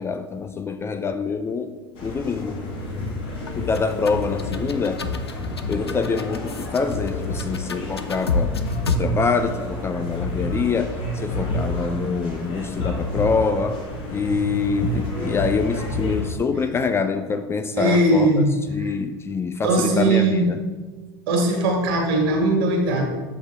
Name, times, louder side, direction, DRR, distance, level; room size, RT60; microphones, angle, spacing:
voice 1, 0.0-1.7 2.0-2.6 3.6-5.1 5.7-8.6 8.9-13.8 14.1-18.3 18.7-20.6, left 5 dB, 20° left, 0.4 m, -25 dB
sound 1, 2.0-16.3, left 1 dB, 40° left, 1.6 m, -29 dB
sound 2, 3.5-9.0, left 4 dB, 85° left, 0.4 m, -29 dB
voice 2, 17.7-18.4 18.8-18.9 19.6-20.5 21.3-23.0, right 2 dB, 60° right, 1.7 m, -19 dB
7.8 x 5.5 x 3.4 m
figure-of-eight pair, 80°, 13 cm